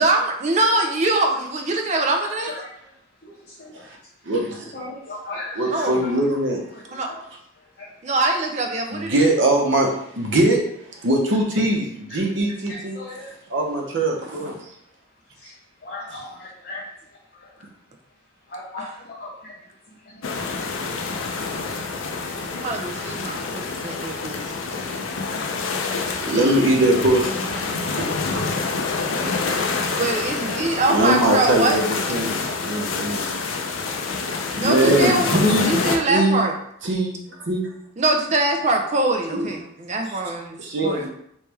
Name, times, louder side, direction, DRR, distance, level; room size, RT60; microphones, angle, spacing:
voice 1, 0.0-2.5 5.7-6.1 6.9-7.1 8.0-9.3 18.8-18.9 22.5-24.4 24.8-25.0 26.7-26.8 27.6-28.6 29.8-31.8 34.6-36.6 38.0-41.1, right 2 dB, 35° right, 3 dB, 0.5 m, -23 dB
voice 2, 2.2-3.0 3.2-3.8 4.7-6.1 6.7-6.8 7.1-7.2 7.6-7.9 12.1-12.2 12.7-13.3 15.3-17.6 18.5-20.6 21.1-21.8, left 2 dB, 50° left, -6 dB, 0.7 m, -39 dB
voice 3, 4.3-4.6 5.6-6.6 8.9-10.6 11.0-13.0 13.5-14.6 26.2-27.3 27.6-27.7 28.0-28.1 30.9-33.2 34.5-35.7 36.1-36.4 36.8-37.2 37.5-37.7 39.3-39.5 40.6-41.1, right 1 dB, 70° right, 0 dB, 0.8 m, -21 dB
sound 1, 20.2-36.0, left 4 dB, 80° left, 0.5 m, -27 dB
3.2 x 3.1 x 3.3 m, 0.71 s
head